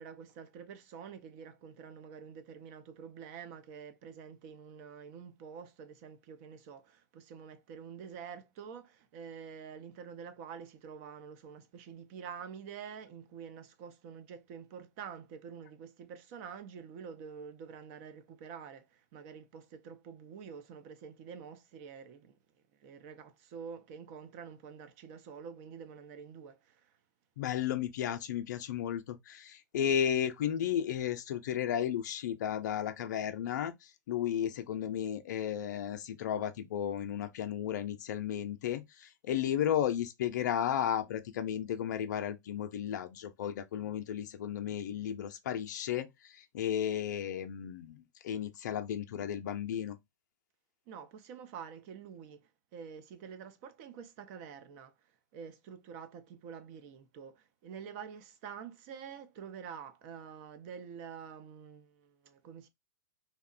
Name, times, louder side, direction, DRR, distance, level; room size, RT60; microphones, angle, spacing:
voice 1, 0.0-22.4 22.8-26.9 50.9-54.9 55.3-62.7, right 7 dB, 50° right, 0.6 m, -47 dB
voice 2, 27.4-50.0, left 9 dB, 70° left, 0.4 m, -34 dB
2.9 x 2.1 x 2.3 m
hypercardioid pair, 125°, 10 cm